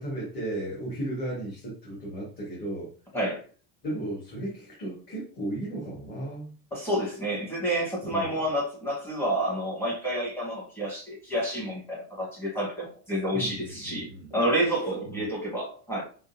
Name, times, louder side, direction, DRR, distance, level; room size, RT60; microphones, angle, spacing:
voice 1, 0.0-2.9 3.8-6.5 8.1-8.4 13.3-14.3 14.8-15.2, right 1 dB, 20° left, 1.3 m, -35 dB
voice 2, 6.7-16.0, right 1 dB, 5° left, 1.1 m, -29 dB
4.6 x 3.7 x 2.6 m
cardioid pair, 180°, 44 cm